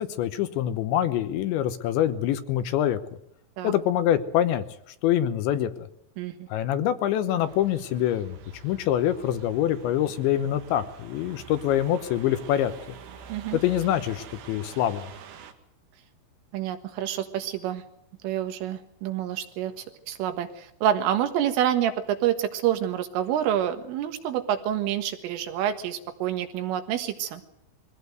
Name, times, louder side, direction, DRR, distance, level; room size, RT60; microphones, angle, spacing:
voice 1, 0.0-3.0 3.6-4.6 5.0-5.9 6.5-8.4 8.6-12.7 13.5-15.1, left 11 dB, 75° left, 11 dB, 3.0 m, -25 dB
voice 2, 6.2-6.5 13.3-13.6 16.5-17.8 18.2-27.4, right 11 dB, 80° right, 7 dB, 4.1 m, -28 dB
sound 1, 7.4-15.5, right 7 dB, 65° right, 3.5 m, -46 dB
22.5 x 16.5 x 8.0 m, 0.78 s
omnidirectional pair, 5.7 m